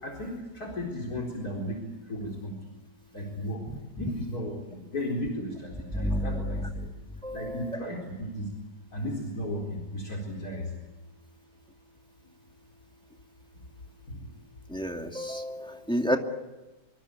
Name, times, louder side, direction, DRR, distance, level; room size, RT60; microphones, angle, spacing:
voice 1, 0.0-1.8 2.1-2.6 3.1-3.6 4.0-6.6 7.3-8.5 8.9-10.6, left 1 dB, 50° left, 2 dB, 4.7 m, -34 dB
voice 2, 5.9-6.9 7.2-7.8 14.7-16.2, equal, ahead, 3 dB, 2.4 m, -30 dB
26.5 x 24.5 x 8.5 m, 1.1 s
omnidirectional pair, 2.1 m